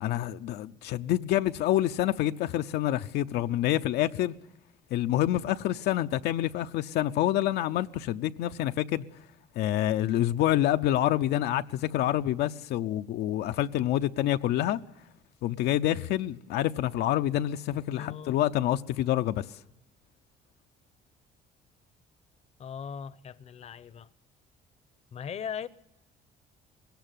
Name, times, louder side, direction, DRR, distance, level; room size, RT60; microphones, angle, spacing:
voice 1, 0.0-4.3 4.9-9.0 9.6-14.8 15.4-19.4, left 13 dB, 80° left, 0.7 m, -27 dB
voice 2, 17.9-18.4 22.6-24.1 25.1-25.7, left 7 dB, 40° left, 0.8 m, -39 dB
21.0 x 17.5 x 9.1 m
cardioid pair, 110°, 17 cm